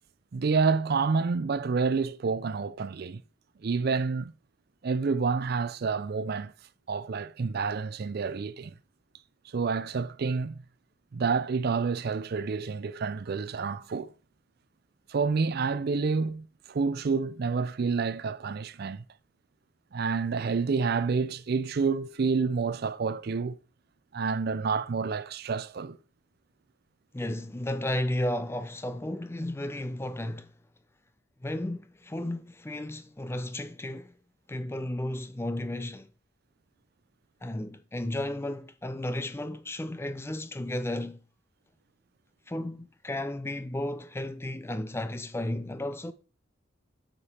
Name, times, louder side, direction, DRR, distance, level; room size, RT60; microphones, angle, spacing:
voice 1, 0.3-3.2 3.6-4.3 4.8-6.5 6.9-8.7 9.5-10.6 11.1-14.1 15.1-19.0 19.9-23.6 24.1-26.0, right 5 dB, 50° right, 0.4 m, -28 dB
voice 2, 27.1-30.5 31.4-34.1 34.5-36.1 37.4-41.2 42.5-46.1, left 1 dB, 10° left, 0.4 m, -33 dB
8.5 x 5.2 x 4.3 m
head